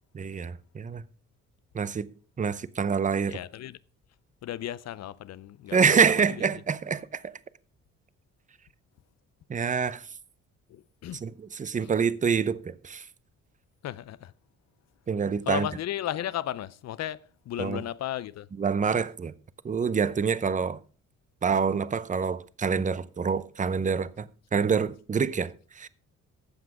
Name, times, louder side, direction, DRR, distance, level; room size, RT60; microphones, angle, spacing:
voice 1, 0.1-1.0 1.7-2.1 2.4-3.4 5.7-7.4 9.5-10.1 11.2-13.1 15.1-15.7 17.6-17.8 18.6-19.3 19.6-20.8 21.4-25.9, right 6 dB, 25° right, 0.7 m, -26 dB
voice 2, 3.3-3.8 4.4-5.8 10.7-11.2 13.8-14.3 15.5-18.5, left 12 dB, 60° left, 0.5 m, -34 dB
15.0 x 5.9 x 4.8 m
cardioid pair, 90°, 30 cm